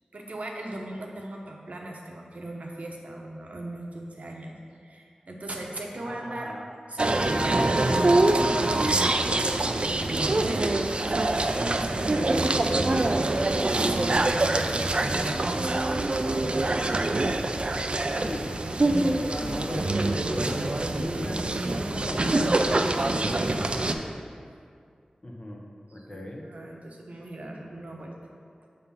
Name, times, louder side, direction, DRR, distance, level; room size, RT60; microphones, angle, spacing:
voice 1, 0.1-4.5 4.8-6.6 6.9-9.1 10.4-15.9 22.9-24.1 25.9-28.1, right 1 dB, 70° right, 0 dB, 0.8 m, -39 dB
voice 2, 5.9-6.7 18.2-18.5 18.8-22.3 25.2-25.6 25.9-26.4, left 1 dB, 40° left, -1 dB, 1.0 m, -36 dB
sound 1, 7.0-23.9, right 2 dB, 45° right, 0.4 m, -25 dB
6.8 x 3.7 x 5.6 m, 2.3 s
wide cardioid pair, 70°, 3 cm